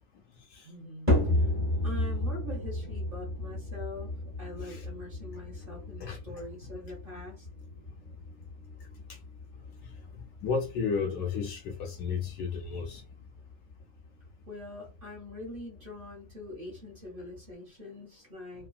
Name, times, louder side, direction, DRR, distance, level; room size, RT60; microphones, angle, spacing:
voice 1, 0.6-1.5 1.8-7.5 14.5-18.7, left 1 dB, 35° right, 1.2 m, -44 dB
sound 1, 1.1-17.5, left 1 dB, 10° right, 0.8 m, -35 dB
voice 2, 9.8-13.0, left 5 dB, 75° left, 1.1 m, -33 dB
3.2 x 2.2 x 2.2 m
omnidirectional pair, 1.8 m